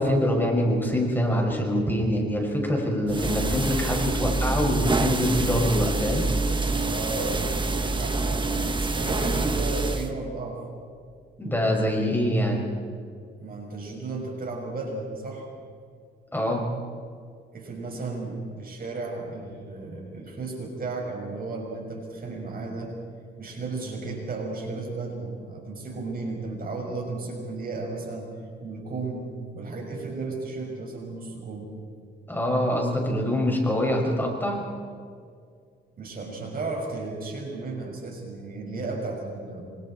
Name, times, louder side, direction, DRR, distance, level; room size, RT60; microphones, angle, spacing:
voice 1, 0.0-6.2 11.4-12.6 16.3-16.7 32.3-34.6, equal, 10° left, -1 dB, 6.0 m, -24 dB
sound 1, 3.1-10.1, right 3 dB, 25° right, 1.7 m, -26 dB
voice 2, 6.8-10.6 13.4-15.5 17.5-22.9 23.4-28.3 28.6-31.7 36.0-39.6, right 3 dB, 45° right, 1 dB, 5.8 m, -34 dB
27.0 x 25.5 x 4.4 m, 2.2 s
cardioid pair, 90°, 20 cm